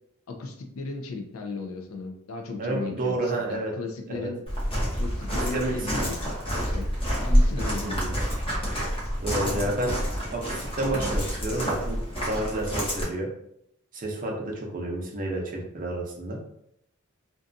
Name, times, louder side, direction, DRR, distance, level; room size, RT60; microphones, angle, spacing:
voice 1, 0.3-4.4 5.0-6.2 6.4-6.9 7.2-8.2 9.4-9.7, left 3 dB, 75° left, 4 dB, 0.4 m, -36 dB
voice 2, 2.6-3.7 4.1-4.3 5.3-6.1 7.6-8.2 9.2-10.0 10.3-12.0 12.3-13.3 13.9-16.4, right 1 dB, 40° right, -1 dB, 0.6 m, -30 dB
Walk footsteps, 4.5-13.0, equal, 25° left, 0.9 m, -27 dB
2.6 x 2.3 x 2.5 m, 0.76 s
head